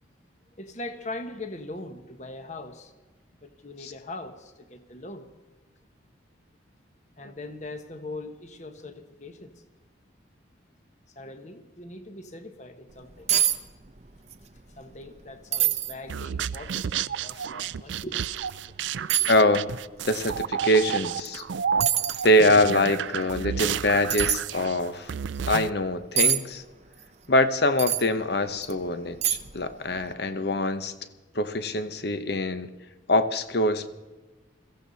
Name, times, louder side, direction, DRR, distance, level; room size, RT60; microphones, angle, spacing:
voice 1, 0.6-2.9 3.4-5.3 7.2-9.6 11.1-13.3 14.8-18.2 18.7-19.3, left 2 dB, 35° left, 1.3 m, -41 dB
sound 1, 12.9-13.0 13.3-13.6 13.9-14.4 14.8-14.9 15.5-15.9 16.6-16.7 18.2-18.3 19.1-19.4 21.2-21.4 21.8-22.3 24.1-24.4 26.2-26.4 27.8-28.1 28.6-28.7 29.2-29.6 29.9-30.0, right 10 dB, 35° right, 0.8 m, -24 dB
sound 2, 16.1-25.7, right 8 dB, 70° right, 0.4 m, -31 dB
voice 2, 19.3-19.7 20.0-21.4 22.2-25.1 25.5-26.6 27.3-30.9 31.3-32.7 33.1-33.9, left 1 dB, 55° left, 1.0 m, -24 dB
22.0 x 15.5 x 4.1 m
head